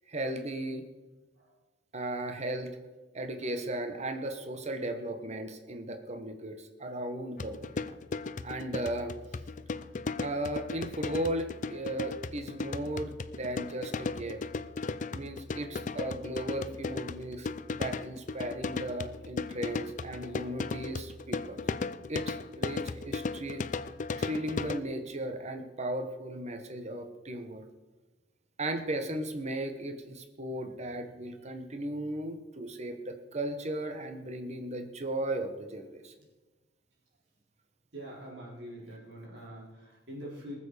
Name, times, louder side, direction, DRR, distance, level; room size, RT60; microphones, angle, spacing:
voice 1, 0.1-0.9 1.9-2.8 3.1-7.8 8.4-9.1 10.2-14.4 15.1-17.5 17.7-21.6 22.1-23.6 24.2-27.6 28.6-36.1, right 1 dB, 40° right, 6 dB, 1.3 m, -36 dB
sound 1, 7.4-24.8, left 4 dB, 45° left, 0.5 m, -36 dB
voice 2, 37.9-40.6, equal, 70° right, -4 dB, 4.5 m, -44 dB
19.5 x 7.2 x 5.1 m, 1.2 s
head